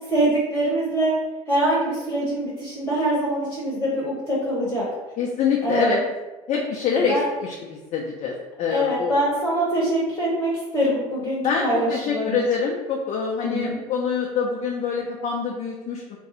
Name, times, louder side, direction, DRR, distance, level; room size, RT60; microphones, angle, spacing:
voice 1, 0.1-1.2 1.5-4.9 5.6-6.0 7.0-7.3 8.7-12.4 13.4-13.8, right 1 dB, 15° left, -6 dB, 1.0 m, -24 dB
voice 2, 5.2-6.0 6.5-9.2 11.4-16.2, left 5 dB, 40° left, -1 dB, 0.5 m, -25 dB
2.6 x 2.3 x 3.8 m, 1.2 s
hypercardioid pair, 70°, 18 cm